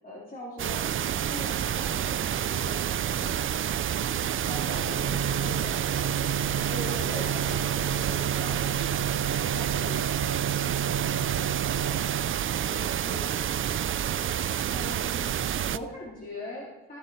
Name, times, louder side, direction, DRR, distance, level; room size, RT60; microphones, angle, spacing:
voice 1, 0.0-2.8 3.2-3.5 4.4-5.8 6.7-9.2 9.5-10.6 11.0-11.3 13.1-13.3 14.7-17.0, equal, 30° left, -4 dB, 2.7 m, -41 dB
sound 1, 0.6-15.8, right 10 dB, 45° right, 0.5 m, -29 dB
voice 2, 4.3-6.3 6.5-8.4 12.4-13.5, left 1 dB, 50° left, 0 dB, 4.8 m, -49 dB
Bowed string instrument, 4.4-12.7, right 7 dB, 65° right, 0.9 m, -33 dB
14.0 x 7.9 x 5.3 m, 1.0 s
cardioid pair, 90°, 30 cm